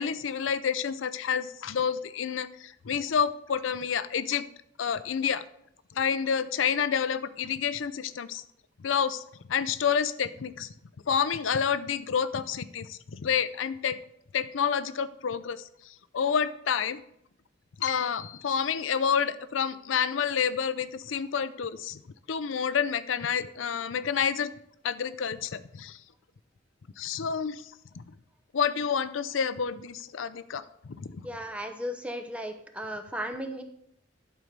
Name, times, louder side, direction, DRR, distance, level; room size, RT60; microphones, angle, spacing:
voice 1, 0.0-4.4 4.8-5.4 5.9-8.4 8.8-9.2 9.5-10.7 11.1-14.0 14.3-17.0 17.8-22.0 22.3-24.5 24.8-26.0 27.0-27.6 28.0-28.1 28.5-30.6 31.0-31.2, left 7 dB, 85° left, 14 dB, 0.5 m, -29 dB
voice 2, 31.2-33.6, equal, 5° right, 6 dB, 0.7 m, -35 dB
11.0 x 4.5 x 5.2 m, 0.73 s
head